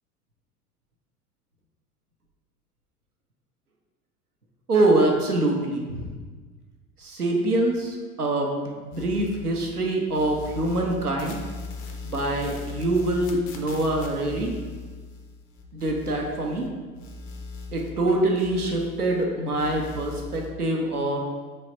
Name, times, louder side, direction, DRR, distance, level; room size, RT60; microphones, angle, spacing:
voice 1, 4.7-6.1 7.0-11.4 12.1-14.5 15.7-16.6 17.7-21.2, right 2 dB, 90° right, 0 dB, 0.7 m, -25 dB
sound 1, 8.9-9.8 10.1-16.7 16.9-19.2 19.5-20.5, left 3 dB, 20° left, 0.4 m, -39 dB
3.8 x 3.1 x 4.3 m, 1.4 s
figure-of-eight pair, 80°, 44 cm